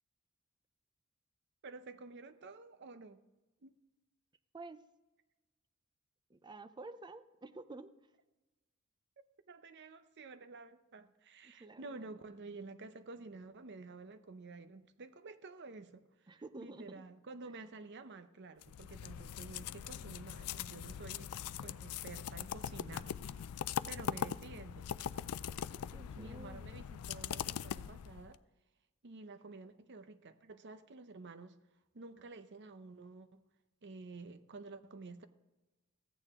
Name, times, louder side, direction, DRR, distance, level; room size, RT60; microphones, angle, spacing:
voice 1, 1.6-3.2 3.6-3.8 9.5-21.3 21.6-23.5 23.9-24.9 26.1-28.4 29.0-31.6 31.9-33.4 33.8-35.3, right 3 dB, 55° right, 0.7 m, -51 dB
voice 2, 6.3-7.9 11.4-12.1 16.3-17.0 17.4-17.5 25.9-26.6, right 3 dB, 20° right, 0.5 m, -50 dB
sound 1, 18.6-28.4, left 9 dB, 90° left, 0.4 m, -41 dB
14.5 x 8.8 x 3.6 m
head